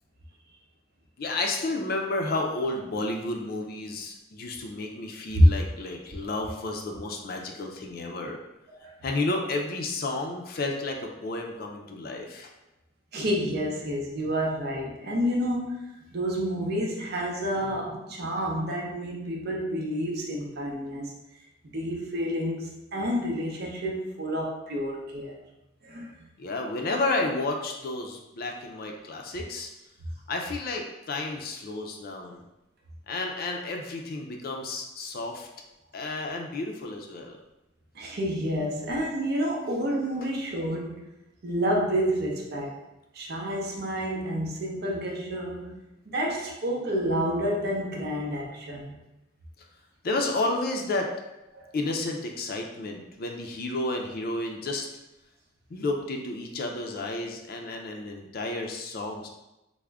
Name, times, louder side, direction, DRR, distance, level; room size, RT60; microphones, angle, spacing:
voice 1, 1.2-8.4 9.0-12.5 26.4-29.7 30.3-32.4 33.1-35.5 35.9-37.4 40.2-40.3 50.0-51.1 51.7-54.9 55.7-59.3, left 2 dB, 50° left, 2 dB, 0.4 m, -31 dB
voice 2, 13.1-21.1 21.7-25.4 25.9-26.1 38.0-41.0 41.4-42.8 43.1-45.7 46.1-49.0 51.5-51.6, equal, 55° right, -1 dB, 0.6 m, -29 dB
3.5 x 2.1 x 3.4 m, 0.93 s
head